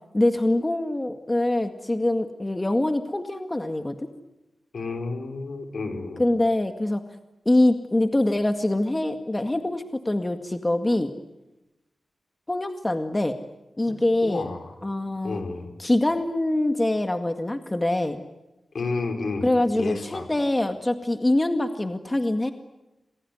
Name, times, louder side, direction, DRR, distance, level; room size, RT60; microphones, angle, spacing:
voice 1, 0.1-4.1 6.2-7.0 7.5-11.1 12.5-13.4 13.8-14.5 14.8-15.4 15.8-18.2 19.4-22.5, left 1 dB, 20° left, 7 dB, 2.0 m, -24 dB
voice 2, 4.7-6.2 13.9-14.8 15.2-15.7 18.7-19.5 19.7-20.3, left 3 dB, 75° left, 5 dB, 5.4 m, -31 dB
27.5 x 22.0 x 9.7 m, 0.96 s
cardioid pair, 70°, 0 cm